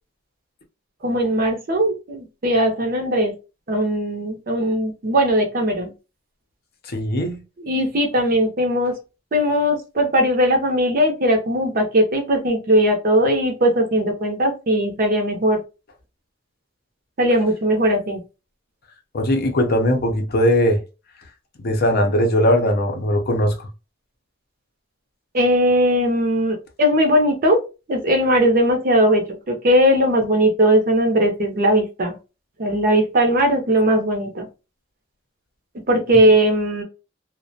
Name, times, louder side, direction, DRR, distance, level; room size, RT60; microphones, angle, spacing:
voice 1, 1.0-3.3 3.7-5.9 7.6-8.9 9.3-15.6 17.2-18.2 25.3-27.6 27.9-32.2 32.6-34.4 35.9-36.8, equal, 45° right, 0.6 m, -19 dB
voice 2, 6.9-7.4 19.1-20.8 21.6-23.7, equal, 50° left, 0.5 m, -19 dB
2.4 x 2.1 x 2.6 m
head